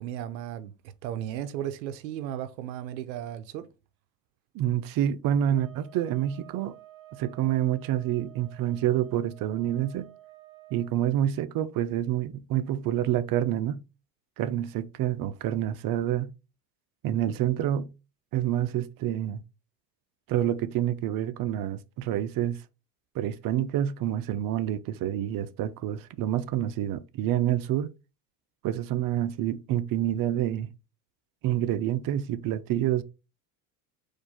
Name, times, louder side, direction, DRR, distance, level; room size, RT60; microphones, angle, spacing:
voice 1, 0.0-3.7, right 11 dB, 85° right, 0.6 m, -35 dB
voice 2, 4.5-6.8 7.1-10.1 10.7-13.8 14.4-16.3 17.0-17.9 18.3-19.4 20.3-22.6 23.1-27.9 28.6-30.7 31.4-33.0, right 11 dB, 45° right, 0.5 m, -27 dB
sound 1, 5.5-10.9, right 14 dB, 10° right, 1.9 m, -52 dB
4.3 x 2.6 x 4.2 m
hypercardioid pair, 80°, 49 cm